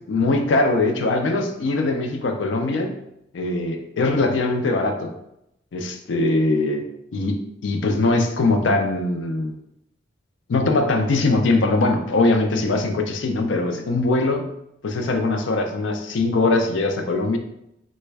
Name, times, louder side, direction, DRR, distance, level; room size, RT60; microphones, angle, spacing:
voice 1, 0.1-2.9 3.3-5.1 5.7-9.6 10.5-14.5 14.8-17.4, left 2 dB, 75° left, 5 dB, 0.4 m, -21 dB
3.3 x 2.1 x 3.3 m, 0.82 s
head